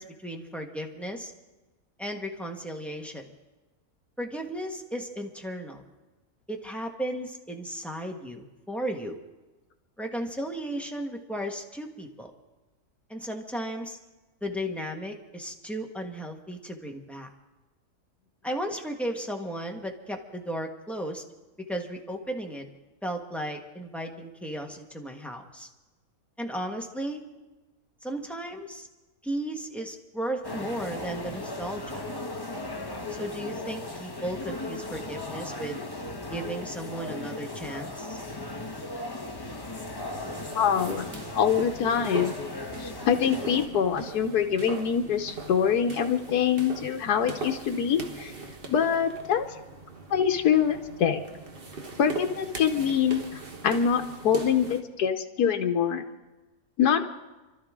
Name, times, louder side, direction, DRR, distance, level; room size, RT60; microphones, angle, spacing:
voice 1, 0.0-1.3 2.0-3.2 4.2-5.8 6.5-9.2 10.0-12.3 13.1-14.0 14.4-17.3 18.4-21.2 21.7-22.6 23.0-25.7 26.4-27.2 28.0-28.9 29.2-32.0 33.1-35.8 36.3-38.2, right 1 dB, ahead, 1 dB, 1.3 m, -35 dB
sound 1, 30.4-43.7, left 2 dB, 20° left, 0.9 m, -37 dB
sound 2, 40.0-54.8, right 4 dB, 40° right, 1.4 m, -40 dB
voice 2, 40.6-42.4 42.8-48.3 48.7-49.5 50.1-51.2 52.0-56.0 56.8-57.2, left 8 dB, 90° left, 5 dB, 1.4 m, -25 dB
28.0 x 12.5 x 3.7 m, 1.1 s
omnidirectional pair, 1.6 m